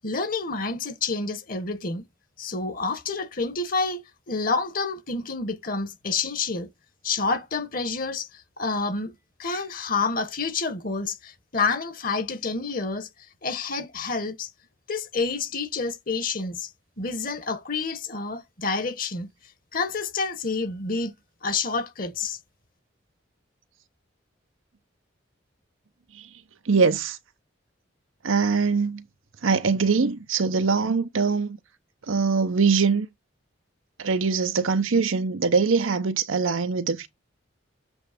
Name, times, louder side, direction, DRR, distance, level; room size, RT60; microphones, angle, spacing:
voice 1, 0.0-2.0 2.4-6.7 7.0-8.3 8.6-9.1 9.4-13.1 13.4-14.5 14.9-16.7 17.0-19.3 19.7-21.1 21.4-22.4, left 4 dB, 45° left, 1.2 m, -28 dB
voice 2, 26.7-27.2 28.2-29.1 29.4-31.6 32.1-33.1 34.0-37.1, right 5 dB, 85° right, 0.7 m, -22 dB
7.9 x 3.2 x 5.0 m
head